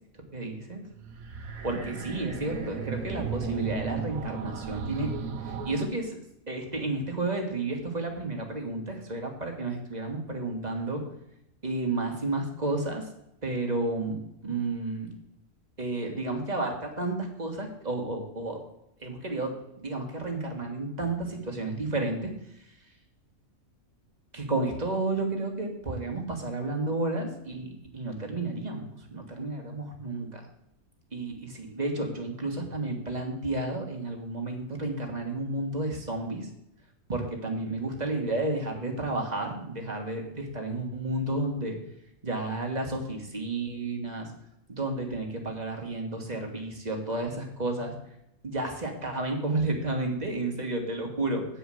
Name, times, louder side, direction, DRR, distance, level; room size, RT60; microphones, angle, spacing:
voice 1, 0.2-0.8 1.6-5.1 5.4-11.0 11.6-13.1 13.4-15.1 15.8-18.6 19.0-22.3 22.6-22.7 24.3-30.5 31.1-36.5 37.1-41.8 42.2-44.3 44.7-48.0 48.4-51.5, right 2 dB, 30° right, 2 dB, 1.7 m, -32 dB
sound 1, 0.9-5.9, right 6 dB, 75° right, 1.3 m, -35 dB
8.8 x 4.9 x 7.6 m, 0.80 s
omnidirectional pair, 1.5 m